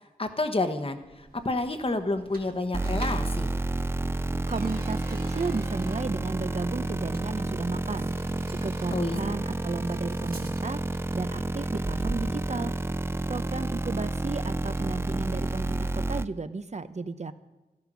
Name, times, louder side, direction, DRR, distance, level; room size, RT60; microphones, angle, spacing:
voice 1, 0.2-3.5 8.9-9.2, left 2 dB, 35° left, 8 dB, 1.2 m, -29 dB
sound 1, 1.0-16.0, right 2 dB, 70° right, 2.5 m, -45 dB
sound 2, 2.7-16.3, right 2 dB, 15° right, 0.4 m, -30 dB
voice 2, 4.5-8.1 8.5-10.8 11.1-12.8 13.3-17.3, right 4 dB, 45° right, 12 dB, 0.8 m, -34 dB
13.0 x 11.5 x 6.2 m, 1.1 s
wide cardioid pair, 60°, 16 cm